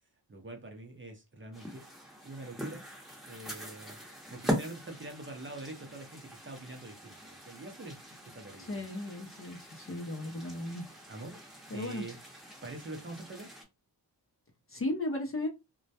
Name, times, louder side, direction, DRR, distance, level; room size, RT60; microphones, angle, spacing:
voice 1, 0.3-1.8 2.2-2.8 3.2-4.0 4.3-8.8 11.1-11.4 11.7-12.2 12.6-13.5, right 2 dB, 30° right, 0.6 m, -44 dB
sound 1, 1.5-13.6, equal, ahead, 0.8 m, -42 dB
voice 2, 8.6-10.9 11.7-12.0 14.7-15.5, left 1 dB, 30° left, 0.5 m, -36 dB
2.2 x 2.1 x 2.7 m
cardioid pair, 75°, 43 cm